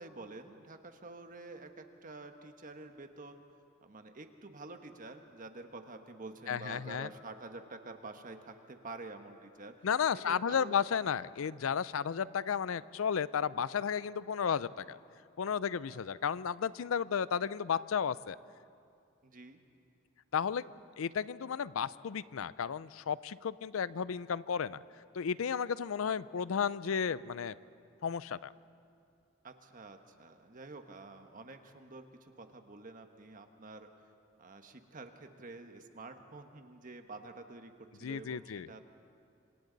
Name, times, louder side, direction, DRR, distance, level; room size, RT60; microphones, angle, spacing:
voice 1, 0.0-3.4 3.8-9.9 10.1-10.8 15.8-16.0 19.2-19.6 29.4-33.9 34.4-38.8, right 3 dB, 40° right, 6 dB, 1.3 m, -48 dB
voice 2, 6.5-7.1 9.8-15.0 15.4-18.4 20.3-20.6 21.0-24.8 25.1-27.6 28.0-28.5 38.0-38.7, left 7 dB, 85° left, 18 dB, 0.5 m, -33 dB
26.5 x 26.5 x 4.0 m, 2.4 s
head